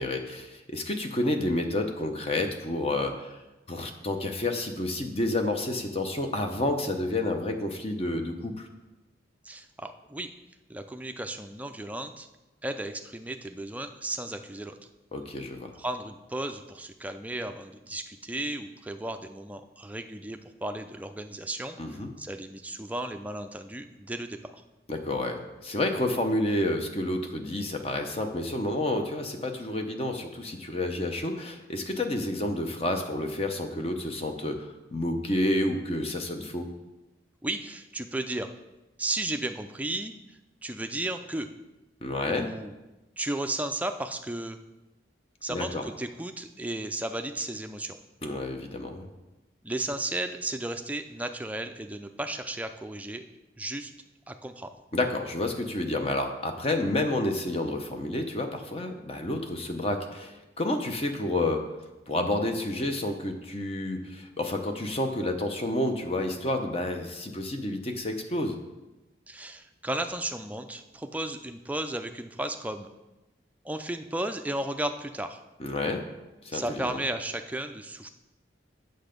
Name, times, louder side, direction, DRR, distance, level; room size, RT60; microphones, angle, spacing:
voice 1, 0.0-3.4 3.7-8.7 15.1-15.7 21.8-22.1 24.9-36.7 42.0-42.5 45.5-45.8 48.2-49.1 54.9-61.6 62.1-68.6 75.6-76.0 76.4-77.0, left 1 dB, 30° left, 5 dB, 0.8 m, -30 dB
voice 2, 9.4-10.3 10.7-12.3 12.6-14.8 15.7-21.8 22.2-24.6 37.4-38.5 39.0-41.5 42.3-42.7 43.2-44.6 45.4-48.0 49.6-53.2 53.6-53.9 54.3-54.7 69.3-72.9 73.6-75.4 76.5-78.1, right 1 dB, 10° right, 7 dB, 0.4 m, -34 dB
8.1 x 6.6 x 5.1 m, 1.0 s
head